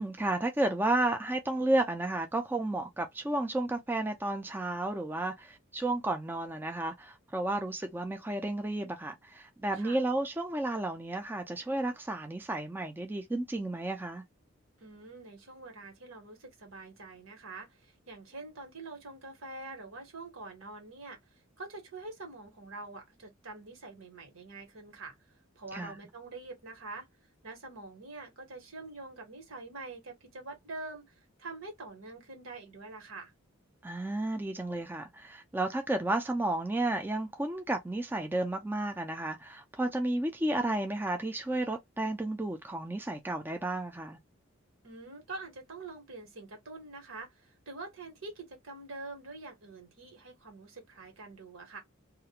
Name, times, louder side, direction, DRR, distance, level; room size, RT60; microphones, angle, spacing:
voice 1, 0.0-14.2 25.7-26.0 33.8-44.2, right 2 dB, 10° right, 0.3 m, -32 dB
voice 2, 14.8-25.1 25.6-27.1 27.4-33.3 44.8-51.8, right 3 dB, 80° right, 1.2 m, -45 dB
2.4 x 2.2 x 2.8 m
head